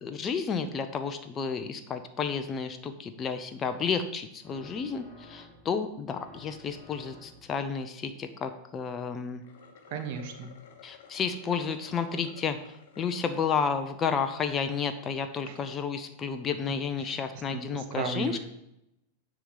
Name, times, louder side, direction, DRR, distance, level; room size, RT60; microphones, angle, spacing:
voice 1, 0.0-9.4 10.8-12.6 13.0-18.4, left 6 dB, 25° left, 8 dB, 0.6 m, -31 dB
sound 1, 4.4-5.8 6.1-7.7, left 2 dB, 10° left, 1.5 m, -52 dB
sound 2, 9.3-13.2 13.7-13.8 14.3-14.7, left 6 dB, 55° left, 1.1 m, -53 dB
voice 2, 9.9-10.5 15.4-15.6 17.0-18.4, right 5 dB, 50° right, 5 dB, 1.0 m, -36 dB
9.8 x 3.8 x 5.7 m, 0.83 s
figure-of-eight pair, 90°, 0 cm